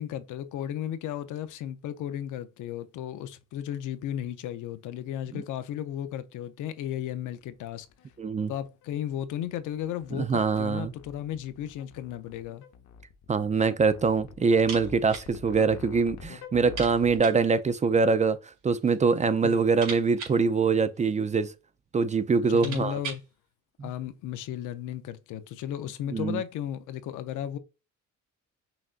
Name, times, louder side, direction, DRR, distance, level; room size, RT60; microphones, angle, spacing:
voice 1, 0.0-7.9 8.5-12.6 19.4-19.8 22.5-23.2 23.8-27.6, left 11 dB, 85° left, 0.6 m, -35 dB
sound 1, 7.9-17.2, left 7 dB, 65° left, 0.9 m, -47 dB
voice 2, 8.2-8.5 10.1-10.9 13.3-21.5 21.9-23.0 26.1-26.4, right 5 dB, 25° right, 0.4 m, -24 dB
sound 2, 14.5-15.3 15.6-15.7 16.0-16.1 16.6-17.5 18.4-19.0 19.3-21.3 22.0-22.1 22.4-23.3, right 5 dB, 75° right, 2.2 m, -41 dB
5.8 x 2.5 x 2.4 m
cardioid pair, 90°, 30 cm